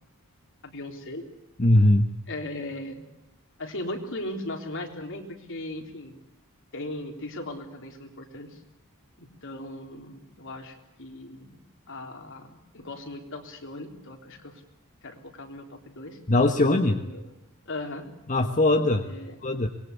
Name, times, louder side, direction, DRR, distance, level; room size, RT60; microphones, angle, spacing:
voice 1, 0.6-1.3 2.3-3.0 3.6-6.1 6.7-8.6 9.2-14.6 15.0-16.2 16.9-17.3 17.7-18.1 19.0-19.4, left 1 dB, 60° left, 4 dB, 3.8 m, -38 dB
voice 2, 1.6-2.1 16.3-17.0 18.3-19.0 19.4-19.7, left 1 dB, 35° left, 5 dB, 1.2 m, -20 dB
25.5 x 21.5 x 8.3 m, 0.90 s
head